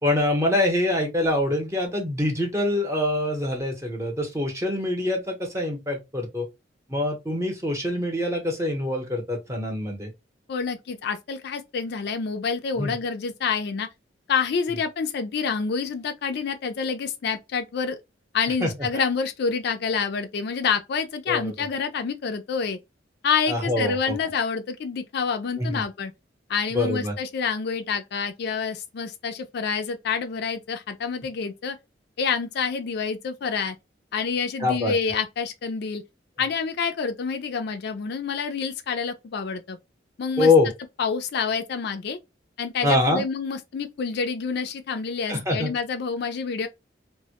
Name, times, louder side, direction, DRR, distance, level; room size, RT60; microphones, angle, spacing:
voice 1, 0.0-6.5 6.9-10.1 12.8-12.9 18.6-18.7 21.3-21.5 23.5-24.2 25.6-25.8 26.7-27.1 34.6-34.9 40.4-40.7 42.8-43.2 45.3-45.7, left 2 dB, 15° right, 0.7 m, -24 dB
voice 2, 10.5-13.9 14.3-18.0 18.3-22.8 23.2-26.1 26.5-31.8 32.2-33.8 34.1-36.0 36.4-39.8 40.2-40.5 41.0-42.2 42.6-46.7, left 5 dB, 60° left, 0.4 m, -27 dB
2.1 x 2.0 x 2.8 m
head